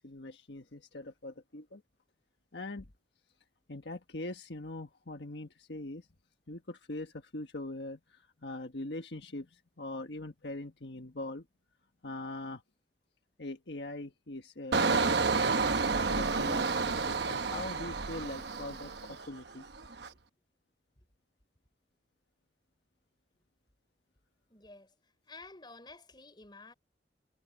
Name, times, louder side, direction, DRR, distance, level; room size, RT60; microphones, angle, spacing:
voice 1, 0.0-1.8 2.5-2.9 3.7-6.1 6.5-11.5 12.0-12.6 13.4-19.6, left 2 dB, 70° left, 1.5 m, -42 dB
Engine, 14.7-19.4 19.7-20.1, right 4 dB, 65° right, 1.0 m, -30 dB
voice 2, 24.5-24.9 25.3-26.7, left 3 dB, 25° left, 4.6 m, -51 dB
head